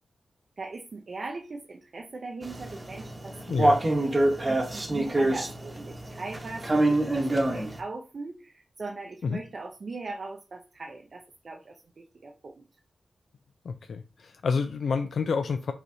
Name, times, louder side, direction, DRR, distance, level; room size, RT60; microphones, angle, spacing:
voice 1, 0.6-3.6 3.9-12.7, right 3 dB, 50° right, 3 dB, 0.5 m, -40 dB
sound 1, 2.4-7.8, right 1 dB, 30° right, 0.9 m, -26 dB
voice 2, 3.5-3.8 9.2-9.4 13.6-15.7, left 5 dB, 75° left, 8 dB, 0.3 m, -29 dB
5.4 x 3.0 x 2.6 m, 0.35 s
wide cardioid pair, 85°, 0 cm